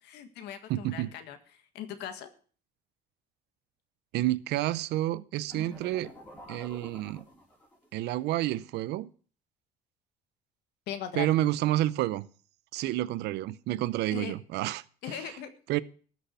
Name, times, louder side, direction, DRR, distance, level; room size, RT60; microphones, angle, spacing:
voice 1, 0.0-1.4 1.7-2.3 10.9-11.4 14.1-14.3 15.0-15.5, left 9 dB, 85° left, 1.7 m, -39 dB
voice 2, 0.7-1.1 4.1-6.1 6.5-7.2 7.9-9.1 11.1-12.3 12.7-14.8 15.1-15.3 15.7-15.8, right 15 dB, 80° right, 0.7 m, -29 dB
sound 1, 5.5-7.9, left 1 dB, 10° left, 4.5 m, -48 dB
13.5 x 6.3 x 8.2 m
cardioid pair, 110°, 17 cm